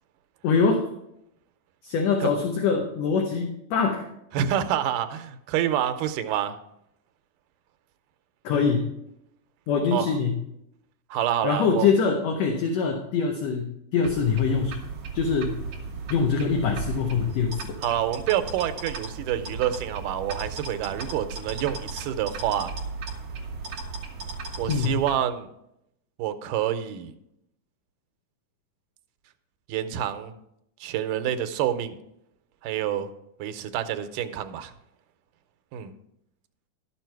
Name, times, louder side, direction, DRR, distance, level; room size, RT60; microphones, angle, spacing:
voice 1, 0.4-0.8 1.8-4.1 8.4-8.9 9.7-10.4 11.4-14.7 15.1-15.6 16.1-17.8 24.7-25.0, left 5 dB, 70° left, 3 dB, 1.9 m, -24 dB
voice 2, 4.3-6.6 9.9-10.2 11.1-11.9 17.8-22.7 24.6-25.5 26.2-27.1 29.7-30.3 30.8-32.0 32.6-33.1 33.4-34.7 35.7-35.9, right 10 dB, 85° right, 9 dB, 2.3 m, -27 dB
sound 1, 14.0-25.2, right 4 dB, 55° right, 2.2 m, -36 dB
12.0 x 7.2 x 4.6 m, 0.80 s
omnidirectional pair, 3.6 m